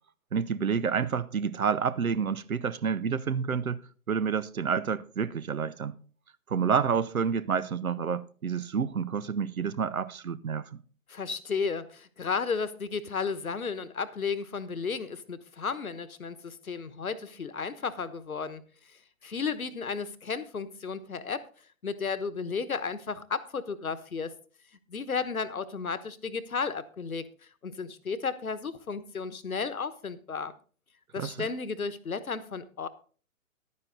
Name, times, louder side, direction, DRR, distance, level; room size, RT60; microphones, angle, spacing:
voice 1, 0.3-6.0 6.5-10.8 31.2-31.5, right 6 dB, 75° right, 0.9 m, -29 dB
voice 2, 11.1-21.5 21.8-24.3 24.9-27.3 27.6-30.5 31.1-32.9, left 5 dB, 80° left, 1.2 m, -33 dB
11.0 x 9.7 x 3.9 m
figure-of-eight pair, 130°, 42 cm